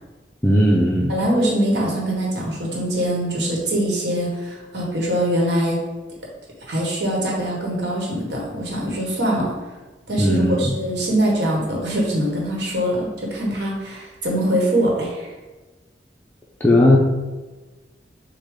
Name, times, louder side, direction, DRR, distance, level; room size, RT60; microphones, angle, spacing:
voice 1, 0.4-1.1 10.2-10.8 16.6-17.0, left 1 dB, 10° left, -5 dB, 0.4 m, -16 dB
voice 2, 1.1-5.8 6.7-9.5 10.1-15.3, right 1 dB, 70° right, -2 dB, 1.2 m, -23 dB
6.5 x 2.2 x 3.6 m, 1.2 s
head